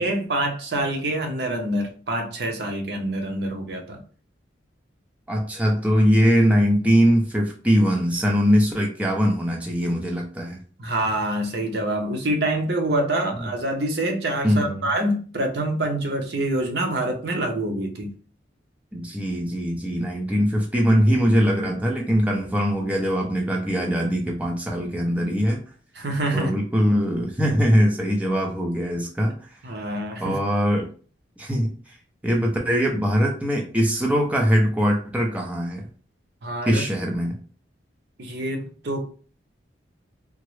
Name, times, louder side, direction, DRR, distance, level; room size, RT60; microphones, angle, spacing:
voice 1, 0.0-4.0 10.8-18.1 26.0-26.5 29.6-30.3 36.4-36.8 38.2-39.0, right 1 dB, 60° right, 3 dB, 0.7 m, -26 dB
voice 2, 5.3-10.6 14.4-14.9 18.9-25.6 26.3-29.3 30.2-30.9 31.4-31.7 32.2-35.9 36.7-37.4, equal, 5° right, -1 dB, 0.4 m, -21 dB
3.5 x 2.0 x 3.1 m, 0.40 s
head